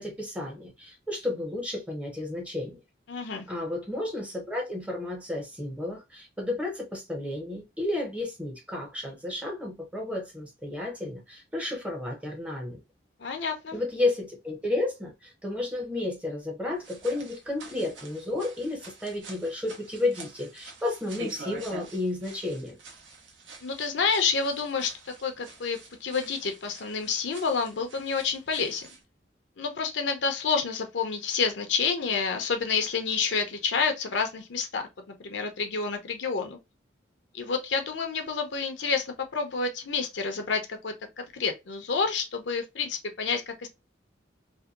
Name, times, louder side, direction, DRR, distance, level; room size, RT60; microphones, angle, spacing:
voice 1, 0.0-2.8 3.5-12.8 13.7-22.8, left 2 dB, 5° right, 0.6 m, -32 dB
voice 2, 3.1-3.5 13.2-13.8 23.6-28.9 29.6-36.6 37.3-43.7, left 5 dB, 75° left, 0.6 m, -29 dB
sound 1, 16.8-29.0, right 3 dB, 80° right, 0.8 m, -47 dB
2.7 x 2.2 x 2.3 m
head